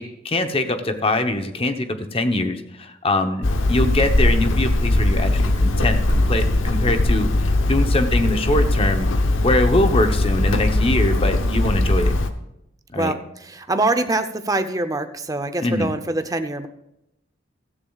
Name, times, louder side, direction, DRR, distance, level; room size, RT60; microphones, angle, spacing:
voice 1, 0.0-9.1 9.4-12.1 12.9-13.1 15.6-15.9, left 1 dB, 30° left, 7 dB, 0.9 m, -23 dB
Hammer, 3.4-12.3, left 1 dB, 85° left, 0.9 m, -20 dB
voice 2, 12.9-16.7, right 2 dB, 20° right, 8 dB, 0.7 m, -24 dB
16.0 x 14.0 x 2.4 m, 0.84 s
head